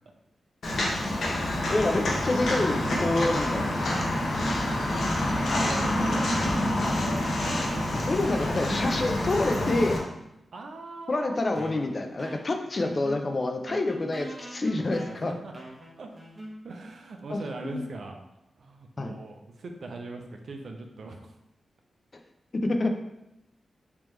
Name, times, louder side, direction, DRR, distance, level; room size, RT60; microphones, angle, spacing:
Walk footsteps, 0.6-10.0, left 1 dB, 70° left, 0.8 m, -27 dB
voice 1, 1.2-3.7 8.0-10.0 11.1-15.3 17.3-17.8 19.0-19.1 22.6-22.9, left 2 dB, 45° left, 5 dB, 0.5 m, -27 dB
sound 1, 4.9-6.7 7.0-10.2 11.0-11.1 11.5-16.9, right 1 dB, 30° right, 1.0 m, -43 dB
voice 2, 5.1-7.6 10.5-11.4 15.1-15.5 16.0-16.1 16.6-18.2 18.6-21.3, right 3 dB, 70° right, 3 dB, 0.5 m, -41 dB
3.5 x 2.9 x 3.1 m, 0.88 s
cardioid pair, 55°, 0 cm